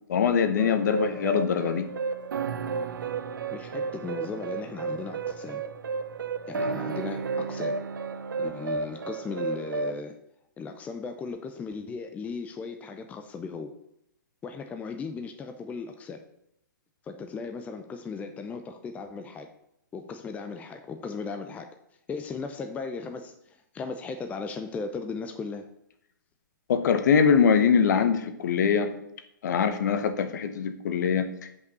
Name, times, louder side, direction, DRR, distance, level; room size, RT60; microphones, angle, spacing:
voice 1, 0.1-1.9 26.7-28.9 29.4-31.3, left 6 dB, 55° left, 9 dB, 1.1 m, -23 dB
sound 1, 0.6-10.0, right 4 dB, 70° right, 0.7 m, -32 dB
voice 2, 3.5-5.6 6.5-7.8 8.4-10.1 10.6-13.7 14.4-16.2 17.0-19.5 19.9-21.7 22.1-25.6, left 4 dB, 15° left, 6 dB, 0.6 m, -37 dB
5.8 x 5.5 x 6.8 m, 0.76 s
hypercardioid pair, 130°, 11 cm